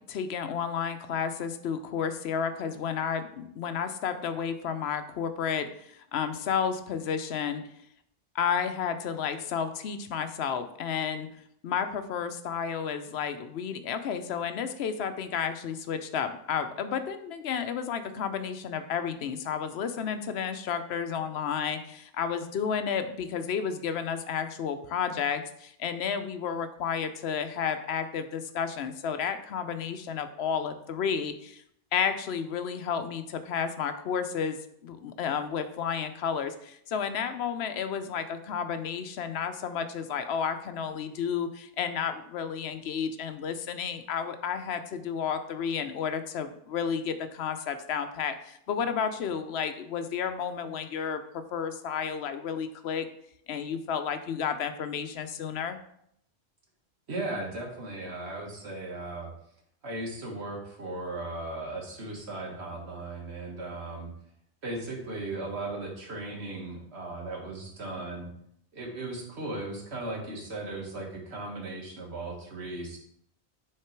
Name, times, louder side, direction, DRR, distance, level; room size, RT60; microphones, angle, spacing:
voice 1, 0.0-7.6 8.3-11.3 11.6-31.6 31.9-34.6 34.8-51.2 51.5-53.1 53.5-55.8, left 7 dB, 80° left, 9 dB, 0.9 m, -31 dB
voice 2, 57.1-59.3 59.8-64.1 64.6-68.3 68.7-73.0, right 2 dB, 90° right, -1 dB, 1.8 m, -37 dB
6.5 x 3.7 x 4.5 m, 0.72 s
omnidirectional pair, 1.1 m